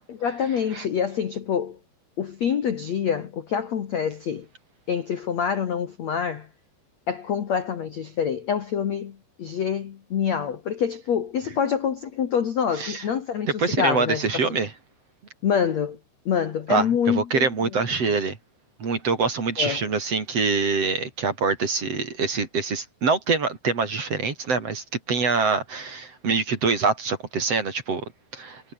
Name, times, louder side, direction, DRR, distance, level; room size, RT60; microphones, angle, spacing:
voice 1, 0.1-1.8 2.2-4.5 4.9-6.5 7.1-14.4 15.4-16.0 16.2-17.5 19.6-19.8, left 7 dB, 75° left, 1.5 m, -26 dB
voice 2, 13.6-14.7 16.7-18.4 18.8-28.6, right 4 dB, 35° right, 3.6 m, -25 dB
omnidirectional pair, 5.9 m